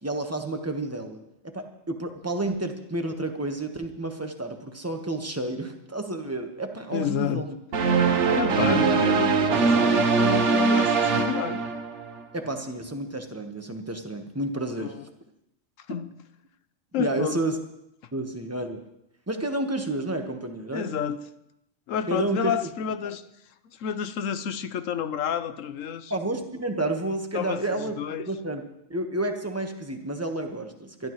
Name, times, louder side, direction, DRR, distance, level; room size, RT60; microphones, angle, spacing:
voice 1, 0.0-1.2 1.4-7.5 8.3-8.9 12.3-15.0 17.0-17.6 18.1-18.8 19.3-21.0 22.1-22.5 26.1-28.0 28.3-28.6 28.9-31.1, right 2 dB, 10° right, 4 dB, 1.2 m, -30 dB
voice 2, 6.9-7.5 8.2-11.7 14.8-15.0 15.9-16.1 16.9-17.4 20.7-21.2 21.9-23.3 23.7-26.1 27.3-28.3, left 8 dB, 90° left, 11 dB, 1.1 m, -30 dB
sound 1, 7.7-12.2, right 5 dB, 70° right, 1.3 m, -22 dB
23.5 x 12.0 x 3.1 m, 0.82 s
omnidirectional pair, 1.3 m